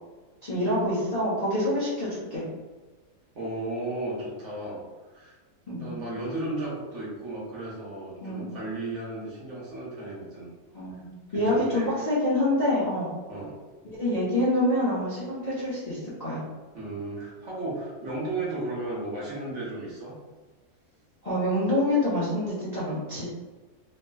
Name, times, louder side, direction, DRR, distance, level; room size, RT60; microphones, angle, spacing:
voice 1, 0.4-2.4 5.7-6.0 8.2-8.5 10.7-13.1 13.8-16.4 21.2-23.2, left 1 dB, 35° left, -10 dB, 0.7 m, -26 dB
voice 2, 3.3-4.8 5.1-5.4 5.7-10.5 10.9-11.0 11.3-11.9 13.3-13.5 16.7-20.1, right 2 dB, 55° right, -6 dB, 1.2 m, -34 dB
3.1 x 2.9 x 2.2 m, 1.3 s
omnidirectional pair, 1.6 m